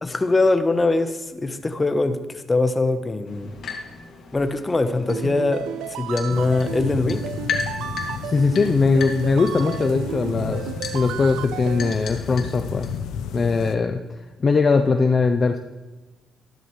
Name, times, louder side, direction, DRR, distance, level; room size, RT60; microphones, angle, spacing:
voice 1, 0.0-2.2 2.5-3.5 4.3-7.3, left 2 dB, 25° left, 8 dB, 1.1 m, -22 dB
sound 1, 3.3-13.0, left 5 dB, 65° left, 2.2 m, -36 dB
sound 2, 5.1-11.9, right 12 dB, 85° right, 0.3 m, -33 dB
sound 3, 6.3-13.8, left 7 dB, 90° left, 0.8 m, -33 dB
voice 2, 8.2-10.7 10.9-12.9 13.3-14.0 14.4-15.6, left 4 dB, 40° left, 6 dB, 0.6 m, -20 dB
13.5 x 12.0 x 3.2 m, 1.2 s
cardioid pair, 90°, 0 cm